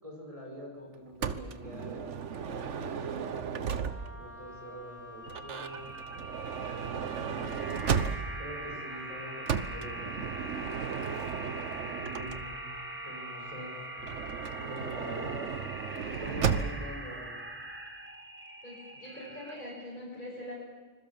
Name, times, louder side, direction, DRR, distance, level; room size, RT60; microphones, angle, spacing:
voice 1, 0.0-5.9 6.9-7.8 8.4-10.7 11.8-12.7 13.0-13.8 14.2-14.3 14.6-15.6 15.9-17.4, equal, 25° right, 0 dB, 6.3 m, -45 dB
Motor vehicle (road) / Sliding door, 1.2-4.3 5.3-8.5 9.5-12.8 14.0-17.0, right 7 dB, 70° right, 1.4 m, -34 dB
Wind instrument woodwind instrument, 3.6-16.1, right 2 dB, 90° right, 2.9 m, -46 dB
sound 1, 5.2-19.8, right 1 dB, 10° right, 1.9 m, -44 dB
voice 2, 18.6-20.5, left 1 dB, 40° left, -6 dB, 6.1 m, -43 dB
25.5 x 21.5 x 7.3 m, 1.5 s
omnidirectional pair, 1.3 m